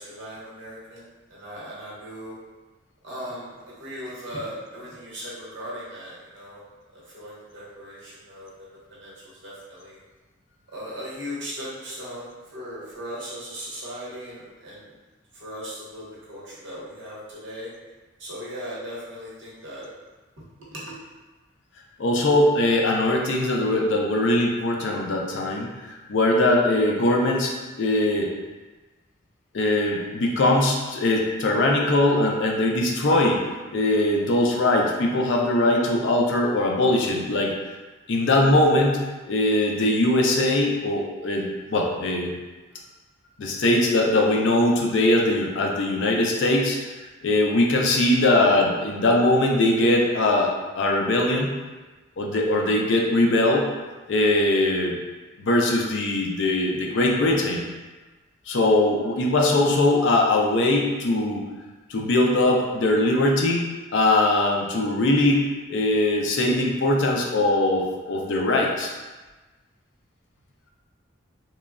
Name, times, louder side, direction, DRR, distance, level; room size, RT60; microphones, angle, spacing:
voice 1, 0.0-2.4 3.0-6.6 6.9-10.0 10.7-14.9 15.3-17.7 18.2-19.9 20.7-21.0, equal, 60° right, -7 dB, 0.8 m, -38 dB
voice 2, 22.0-28.3 29.5-33.4 33.7-37.5 38.1-42.3 43.4-46.8 47.2-51.6 52.2-53.7 54.1-55.0 55.4-57.7 58.5-61.4 61.9-68.9, left 1 dB, 60° left, 0 dB, 0.4 m, -21 dB
3.0 x 2.2 x 2.3 m, 1.2 s
head